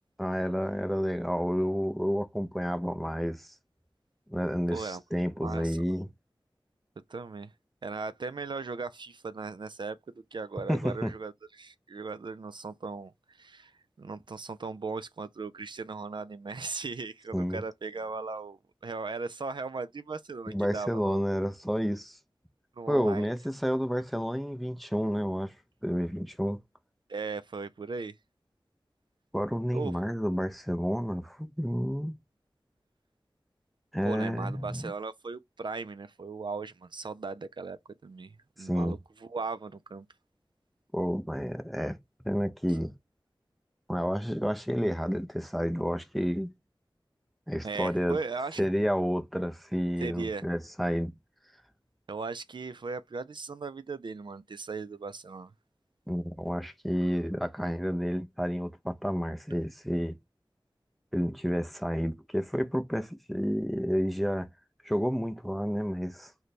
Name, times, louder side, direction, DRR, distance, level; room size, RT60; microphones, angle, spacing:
voice 1, 0.2-3.5 4.3-6.1 10.7-11.1 17.3-17.6 20.5-22.2 22.9-25.5 25.8-26.6 29.3-32.2 33.9-34.9 38.6-39.0 40.9-42.0 42.2-42.9 43.9-46.5 47.5-48.2 48.6-51.1 56.1-60.2 61.1-64.5 64.8-66.3, equal, ahead, 0.5 m, -30 dB
voice 2, 4.7-5.0 5.4-5.8 7.1-7.5 7.8-21.2 22.8-23.3 27.1-28.2 29.7-30.0 34.0-40.1 42.7-42.8 47.6-48.6 50.0-50.5 52.1-55.5, right 4 dB, 65° right, 0.3 m, -38 dB
3.2 x 2.2 x 4.0 m
wide cardioid pair, 55°, 9 cm